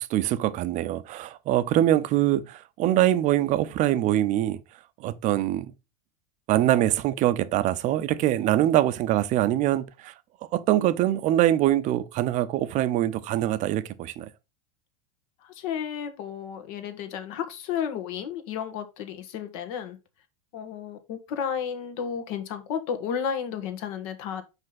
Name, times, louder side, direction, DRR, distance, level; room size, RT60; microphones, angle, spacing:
voice 1, 0.0-4.6 5.0-5.7 6.5-10.1 10.5-14.3, right 13 dB, 40° right, 0.7 m, -23 dB
voice 2, 15.4-20.0 20.5-24.4, left 8 dB, 60° left, 1.5 m, -32 dB
5.3 x 5.2 x 3.9 m
supercardioid pair, 120°, 19 cm